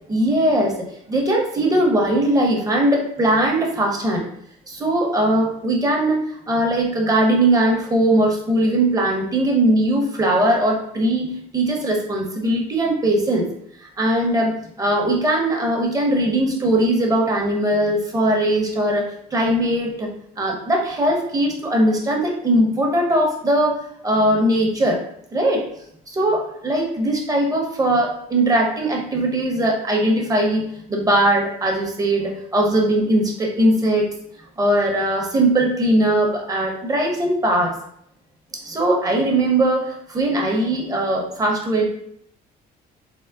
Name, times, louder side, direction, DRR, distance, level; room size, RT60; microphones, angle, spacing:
voice 1, 0.1-0.8 1.1-4.3 4.7-6.2 6.5-13.4 13.8-20.1 20.4-23.8 24.0-25.0 25.3-25.6 26.1-34.0 34.6-37.7 38.6-41.8, right 1 dB, 20° right, 0 dB, 0.8 m, -20 dB
3.6 x 2.0 x 3.4 m, 0.70 s
cardioid pair, 110°, 17 cm